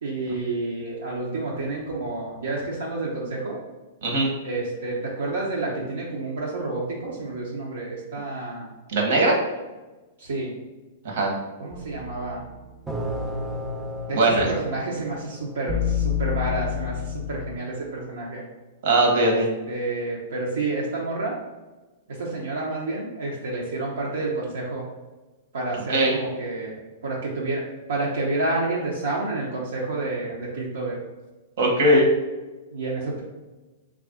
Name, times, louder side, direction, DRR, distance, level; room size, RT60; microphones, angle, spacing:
voice 1, 0.0-3.6 4.4-8.7 10.2-10.5 11.6-12.4 14.1-17.0 17.3-18.4 19.2-19.4 19.7-21.4 22.2-24.8 25.5-27.6 27.9-31.0 32.7-33.2, right 2 dB, 85° right, -4 dB, 0.6 m, -29 dB
voice 2, 4.0-4.3 8.9-9.4 11.0-11.3 14.1-14.5 18.8-19.5 25.9-26.2 31.6-32.0, right 1 dB, 65° right, 0 dB, 1.0 m, -20 dB
sound 1, 11.7-17.6, left 6 dB, 5° right, 0.4 m, -30 dB
3.2 x 2.4 x 3.6 m, 1.2 s
hypercardioid pair, 135°, 0 cm